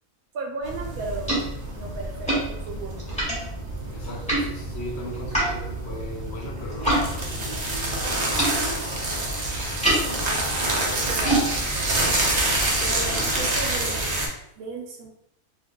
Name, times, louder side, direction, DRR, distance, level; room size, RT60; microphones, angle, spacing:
voice 1, 0.3-3.0 9.1-9.3 11.0-11.5 12.8-14.2 14.6-15.1, right 3 dB, 75° right, 1 dB, 1.0 m, -35 dB
sound 1, 0.6-7.1 7.3-13.2, right 1 dB, 5° left, 1.1 m, -30 dB
sound 2, 0.6-14.3, right 2 dB, 50° right, 0.5 m, -27 dB
voice 2, 3.9-8.3 12.4-14.0, equal, 55° left, -3 dB, 1.0 m, -38 dB
2.7 x 2.3 x 3.6 m, 0.78 s
omnidirectional pair, 1.5 m